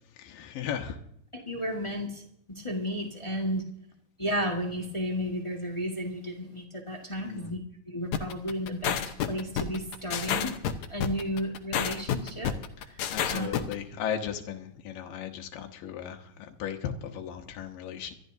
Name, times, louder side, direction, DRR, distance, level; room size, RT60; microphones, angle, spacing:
voice 1, 0.2-1.0 7.2-7.5 13.1-18.1, left 8 dB, 90° left, 3 dB, 2.8 m, -36 dB
voice 2, 1.3-2.2 2.5-3.6 4.2-7.6 7.9-10.5 10.9-12.5 13.3-13.5, equal, 35° left, 0 dB, 0.5 m, -33 dB
sound 1, 8.1-13.7, left 9 dB, 70° left, 2.0 m, -29 dB
25.5 x 13.0 x 2.7 m, 0.70 s
omnidirectional pair, 3.8 m